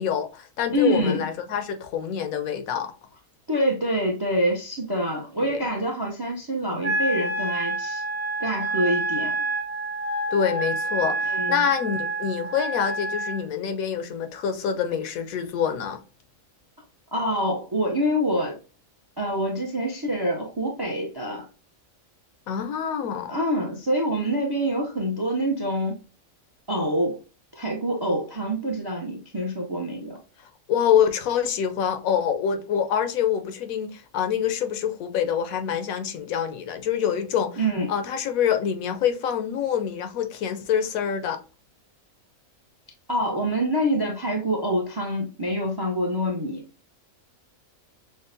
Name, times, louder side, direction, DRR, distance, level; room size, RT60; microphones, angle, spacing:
voice 1, 0.0-2.9 5.5-5.7 10.3-16.0 22.5-23.4 30.7-37.6 37.9-41.4, left 8 dB, 85° left, 1.0 m, -26 dB
voice 2, 0.7-1.2 3.5-8.0 8.4-9.4 11.3-11.6 17.1-18.6 19.2-21.5 23.3-26.0 26.7-27.2 27.5-30.2 37.6-37.9 43.1-46.6, equal, 40° right, 0.3 m, -26 dB
Wind instrument woodwind instrument, 6.8-13.4, right 2 dB, 80° right, 1.3 m, -28 dB
6.2 x 2.1 x 2.6 m
omnidirectional pair, 1.4 m